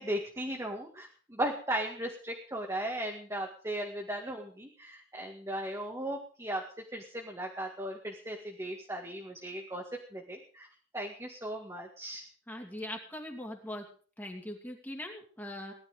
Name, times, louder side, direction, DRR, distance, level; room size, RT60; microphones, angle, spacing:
voice 1, 0.0-6.6 6.9-9.8 10.1-10.7 10.9-12.2, right 1 dB, 15° right, 0 dB, 2.0 m, -37 dB
voice 2, 12.5-13.9 14.2-15.7, left 1 dB, 10° left, 1 dB, 2.6 m, -41 dB
19.5 x 11.5 x 5.0 m, 0.43 s
head